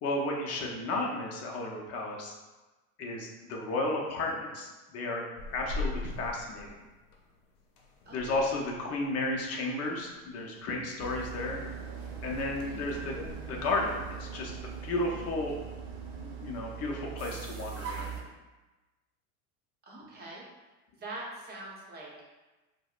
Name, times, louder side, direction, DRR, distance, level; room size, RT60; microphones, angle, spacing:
voice 1, 0.0-2.3 3.0-5.2 5.5-6.7 8.1-11.6 12.2-13.2 13.4-14.5 14.8-15.5 16.2-18.1, left 2 dB, 35° left, -1 dB, 0.7 m, -33 dB
sound 1, 5.4-13.3, left 3 dB, 85° left, 0.7 m, -43 dB
voice 2, 8.0-8.5 12.7-13.1 19.8-20.4 21.0-22.3, right 2 dB, 20° right, -4 dB, 0.9 m, -44 dB
sound 2, 11.0-18.2, right 6 dB, 50° right, 0.9 m, -41 dB
4.6 x 2.2 x 2.4 m, 1.2 s
supercardioid pair, 115°, 43 cm